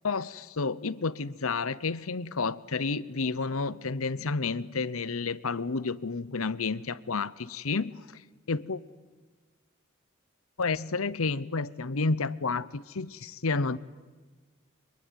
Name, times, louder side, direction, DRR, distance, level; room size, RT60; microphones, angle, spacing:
voice 1, 0.0-8.0 8.5-8.8 10.6-13.8, left 4 dB, 85° left, 0.9 m, -30 dB
24.5 x 23.0 x 9.5 m
head